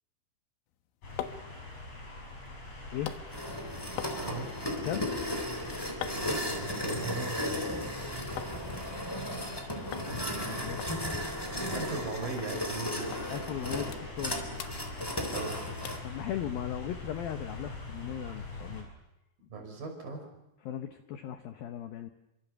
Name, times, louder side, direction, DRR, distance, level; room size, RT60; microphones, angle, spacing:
sound 1, 0.7-8.6 8.9-9.6 9.9-10.1 10.4-10.5 10.8-12.1 12.4-12.5 13.1-13.3 13.6-14.3 14.6-15.5 15.9-16.1 16.6-16.7, left 11 dB, 90° left, 3.8 m, -45 dB
sound 2, 1.0-18.8, left 2 dB, 35° left, 6.2 m, -44 dB
sound 3, 3.3-16.0, left 1 dB, 5° left, 2.6 m, -35 dB
voice 1, 4.2-4.7 6.6-7.4 11.7-13.2 15.3-15.6 19.5-20.2, right 4 dB, 50° right, 2 dB, 7.5 m, -38 dB
voice 2, 10.0-10.8 13.3-14.4 16.0-18.9 20.7-22.1, left 10 dB, 75° left, 7 dB, 2.3 m, -37 dB
29.0 x 25.0 x 7.1 m, 0.91 s
omnidirectional pair, 5.5 m